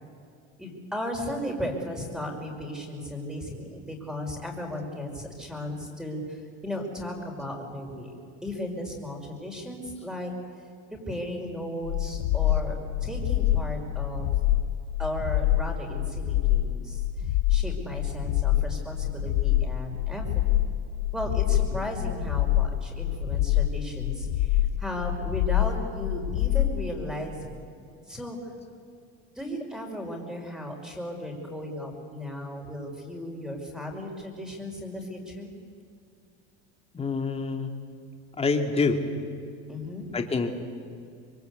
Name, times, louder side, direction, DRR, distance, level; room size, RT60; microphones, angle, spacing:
voice 1, 0.6-8.1 8.4-10.3 10.9-14.3 15.0-20.3 21.1-27.6 28.1-28.4 29.4-35.5 39.7-40.1, left 1 dB, ahead, 1 dB, 5.3 m, -35 dB
sound 1, 11.8-26.8, left 13 dB, 70° left, 1.4 m, -26 dB
voice 2, 36.9-37.7 38.4-39.0 40.1-40.5, left 4 dB, 20° left, 4 dB, 2.6 m, -26 dB
26.0 x 22.5 x 8.3 m, 2.3 s
supercardioid pair, 125°, 33 cm